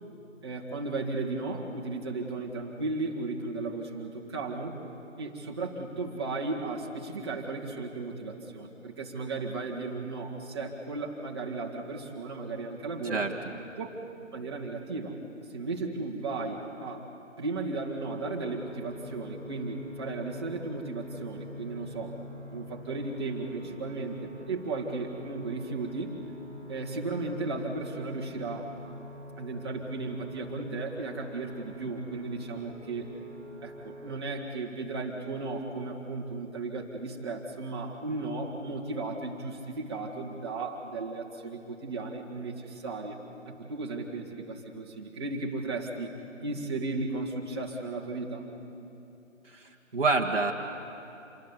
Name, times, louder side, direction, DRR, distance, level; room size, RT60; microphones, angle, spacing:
voice 1, 0.4-4.7 5.2-13.2 13.8-13.9 14.3-15.2 15.5-17.1 17.4-22.2 22.5-26.2 26.7-28.8 29.4-33.1 33.6-43.2 43.5-46.1 46.4-48.5, right 3 dB, 20° right, -2 dB, 1.9 m, -35 dB
sound 1, 18.0-34.2, left 1 dB, 90° left, 6.6 m, -46 dB
voice 2, 49.4-50.5, right 3 dB, 50° right, -3 dB, 1.4 m, -27 dB
26.5 x 20.5 x 7.3 m, 2.9 s
figure-of-eight pair, 155°, 39 cm